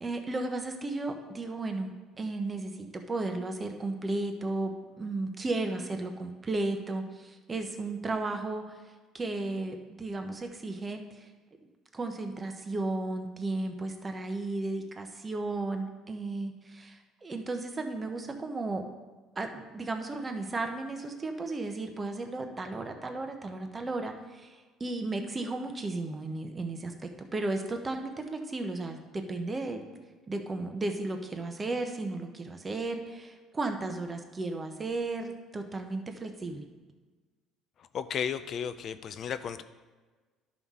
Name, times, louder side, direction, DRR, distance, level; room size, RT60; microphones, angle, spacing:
voice 1, 0.0-8.8 9.1-11.3 11.9-18.8 19.4-29.8 30.3-36.6, right 2 dB, 15° right, 5 dB, 0.6 m, -34 dB
voice 2, 37.9-39.6, left 8 dB, 35° left, 12 dB, 0.3 m, -34 dB
12.5 x 5.6 x 3.6 m, 1.3 s
cardioid pair, 180°, 0 cm